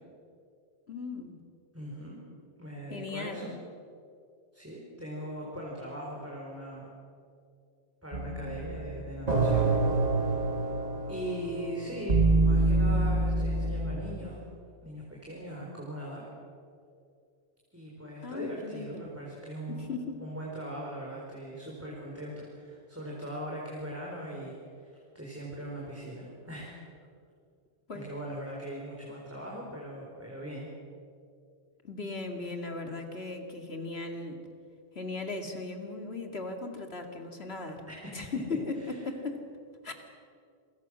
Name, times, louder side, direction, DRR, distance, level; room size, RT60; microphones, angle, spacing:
voice 1, 0.9-1.4 2.9-3.5 18.2-19.0 19.7-20.2 27.9-28.1 31.8-34.4 34.9-37.8 38.1-39.4 39.8-39.9, left 3 dB, 60° left, 4 dB, 2.6 m, -37 dB
voice 2, 1.7-2.2 2.6-3.5 4.5-6.9 8.0-9.7 10.1-10.7 11.1-14.4 14.8-16.3 17.7-19.9 20.2-26.7 27.9-30.7 37.9-38.4 38.8-38.9, right 1 dB, 10° right, -4 dB, 4.4 m, -40 dB
sound 1, 8.1-14.0, right 2 dB, 35° right, 2.1 m, -26 dB
28.0 x 22.5 x 6.3 m, 2.4 s
omnidirectional pair, 1.2 m